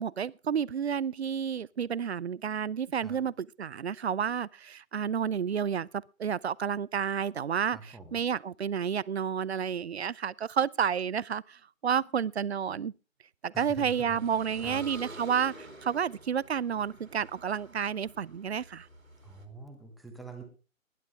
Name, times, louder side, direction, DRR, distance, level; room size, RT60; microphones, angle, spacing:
voice 1, 0.0-5.9 6.2-7.8 8.1-11.6 11.8-12.9 13.4-18.9, right 7 dB, 55° right, 0.6 m, -30 dB
voice 2, 7.7-8.2 13.5-14.9 19.2-20.4, right 3 dB, ahead, 1.1 m, -45 dB
sound 1, 13.8-19.5, right 1 dB, 90° right, 3.3 m, -49 dB
19.5 x 11.0 x 3.6 m
figure-of-eight pair, 140°, 40 cm